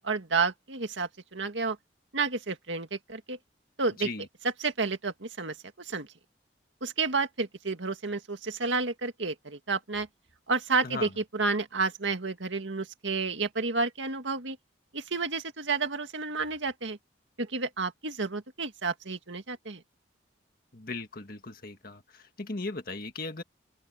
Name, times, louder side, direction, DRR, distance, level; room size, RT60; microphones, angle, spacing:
voice 1, 0.0-1.8 2.1-3.4 3.8-4.1 4.6-6.1 6.8-10.1 10.5-14.6 14.9-17.0 17.4-19.8, right 4 dB, 90° right, 2.0 m, -31 dB
voice 2, 20.7-23.4, left 3 dB, 50° left, 1.9 m, -38 dB
open air
head